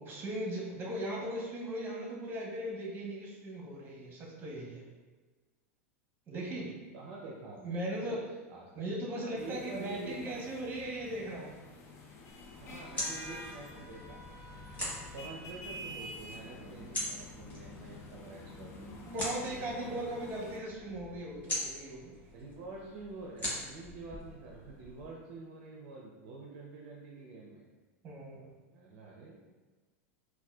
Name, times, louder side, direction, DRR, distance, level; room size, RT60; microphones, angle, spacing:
voice 1, 0.0-4.8 6.3-6.7 7.6-8.2 8.7-11.6 14.8-15.0 19.0-22.1 28.0-28.5, right 1 dB, 25° right, -2 dB, 0.9 m, -38 dB
voice 2, 6.3-6.7 6.9-8.2 8.5-10.7 12.6-14.2 15.1-19.1 19.4-20.2 22.3-27.6 28.7-29.4, right 3 dB, 55° right, -2 dB, 0.5 m, -47 dB
sound 1, 9.4-20.6, left 1 dB, 40° left, 0.5 m, -48 dB
sound 2, 12.3-25.1, left 1 dB, 20° left, 1.4 m, -43 dB
4.1 x 2.2 x 2.3 m, 1.3 s
hypercardioid pair, 100°, 8 cm